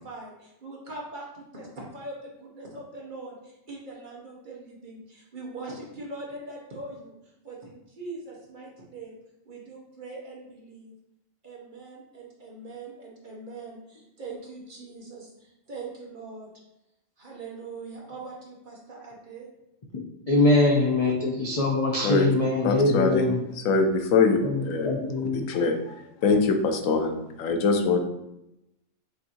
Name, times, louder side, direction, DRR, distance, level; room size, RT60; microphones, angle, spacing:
voice 1, 0.0-7.1 7.4-9.1 9.4-10.9 11.4-16.5 17.2-19.5, right 3 dB, 45° right, -2 dB, 0.9 m, -41 dB
voice 2, 20.3-23.4 24.4-25.4, left 2 dB, 50° left, -2 dB, 0.4 m, -23 dB
voice 3, 22.6-23.3 23.5-25.0 25.3-28.0, left 4 dB, 90° left, 5 dB, 1.0 m, -23 dB
6.4 x 2.6 x 2.8 m, 0.87 s
omnidirectional pair, 1.3 m